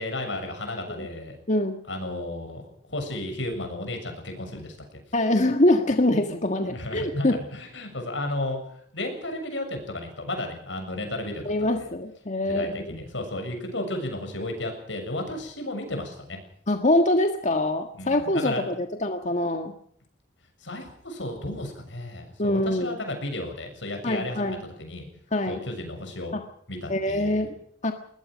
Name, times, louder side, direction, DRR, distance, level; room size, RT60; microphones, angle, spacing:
voice 1, 0.0-1.4 1.9-2.6 2.9-5.0 6.7-8.6 8.9-11.9 12.5-16.4 17.9-18.8 20.6-25.1 25.5-26.3 26.7-27.5, left 1 dB, 85° left, 4 dB, 7.0 m, -33 dB
voice 2, 1.5-1.8 5.1-7.4 11.4-12.9 16.7-19.8 22.4-23.0 24.0-24.6 25.3-25.6 26.3-26.4 26.9-27.5 27.8-27.9, left 1 dB, 40° left, 6 dB, 1.6 m, -24 dB
21.0 x 20.0 x 6.3 m, 0.63 s
head